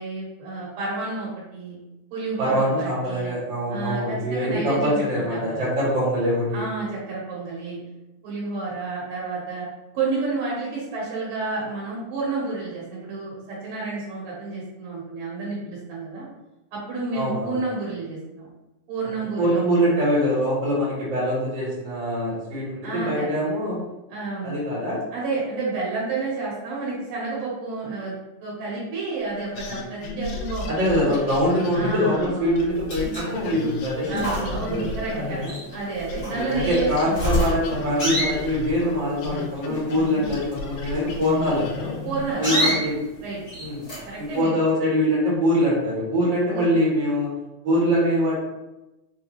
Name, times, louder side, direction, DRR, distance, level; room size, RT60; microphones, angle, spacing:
voice 1, 0.0-1.8 2.1-3.3 3.7-5.7 6.5-7.8 8.2-9.7 9.9-16.3 16.7-18.5 18.9-19.6 22.8-23.5 24.1-24.6 25.1-28.1 28.4-30.9 31.7-32.7 34.1-35.4 35.7-37.4 42.1-42.8 43.2-43.4 44.1-44.6 46.5-46.7, right 3 dB, 75° right, -5 dB, 2.7 m, -30 dB
voice 2, 2.4-6.7 17.1-17.6 19.4-23.8 24.4-25.0 30.7-35.5 36.3-42.0 42.3-43.0 43.6-43.9 44.2-47.3 47.6-48.4, equal, 60° right, -7 dB, 1.3 m, -23 dB
sound 1, 29.5-35.8 36.1-42.3, left 3 dB, 80° left, 2.0 m, -34 dB
sound 2, 32.7-44.4, equal, 55° left, 0.7 m, -30 dB
5.7 x 2.3 x 3.0 m, 0.98 s
omnidirectional pair, 4.0 m